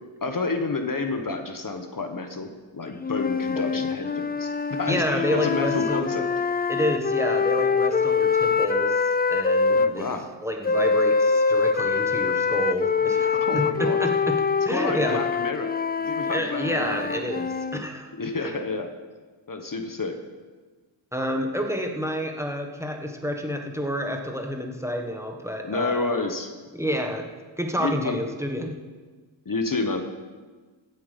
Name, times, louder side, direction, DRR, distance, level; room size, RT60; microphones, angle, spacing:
voice 1, 0.2-2.5 2.7-6.3 9.7-10.3 13.4-14.0 14.7-17.3 18.2-18.9 19.5-20.2 25.6-26.5 27.8-28.2 29.4-30.0, left 3 dB, 45° left, 6 dB, 1.2 m, -30 dB
sound 1, 3.0-9.9 10.6-17.8, left 5 dB, 20° left, 0.4 m, -24 dB
voice 2, 3.5-3.9 4.9-6.2 6.7-9.0 9.3-10.1 10.4-15.2 16.2-18.1 18.4-18.6 21.1-26.1 26.7-27.3 27.6-28.8, equal, 5° right, 3 dB, 1.4 m, -29 dB
15.5 x 7.9 x 5.3 m, 1.4 s
wide cardioid pair, 65°, 46 cm